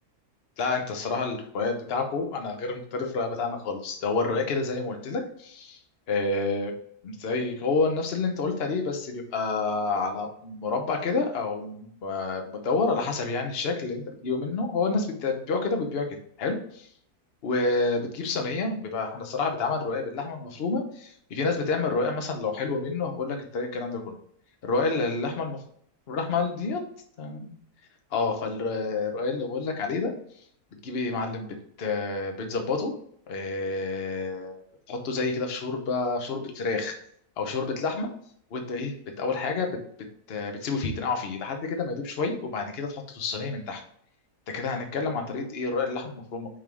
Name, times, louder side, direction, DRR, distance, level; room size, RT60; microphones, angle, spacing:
voice 1, 0.6-5.8 6.1-6.7 7.0-16.1 16.4-16.9 17.4-24.1 24.6-25.6 26.1-26.8 27.2-27.5 28.1-30.1 30.8-32.9 33.3-34.6 34.9-37.0 37.4-38.1 38.5-39.8 40.3-43.8 44.5-46.5, left 3 dB, 45° left, 4 dB, 1.0 m, -29 dB
5.4 x 3.8 x 4.7 m, 0.64 s
omnidirectional pair, 1.7 m